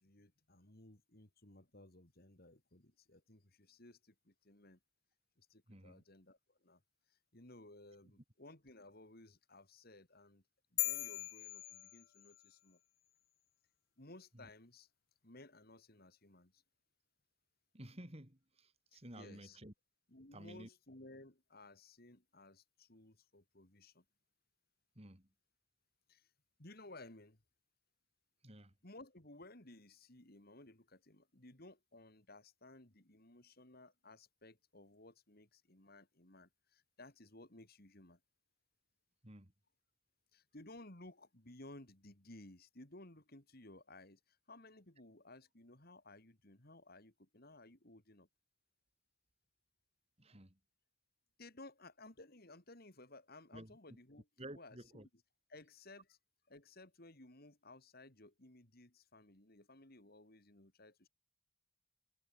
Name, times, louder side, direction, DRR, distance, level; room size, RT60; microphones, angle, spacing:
voice 1, 0.0-4.8 5.4-6.8 7.1-10.4 10.7-12.8 14.0-14.9 15.2-16.6 18.9-19.6 20.1-24.0 26.1-26.3 26.6-27.4 28.8-38.2 40.3-48.3 51.4-54.3 54.5-55.0 55.5-56.2 56.5-61.1, left 2 dB, 45° left, 2.9 m, -58 dB
voice 2, 5.7-6.0 14.3-14.4 17.7-19.7 20.3-20.7 24.9-25.3 28.4-28.7 39.2-39.5 50.2-50.6 53.5-54.0 54.4-55.1, right 1 dB, 30° right, 3.2 m, -53 dB
sound 1, 10.8-12.5, left 21 dB, 65° left, 0.3 m, -40 dB
head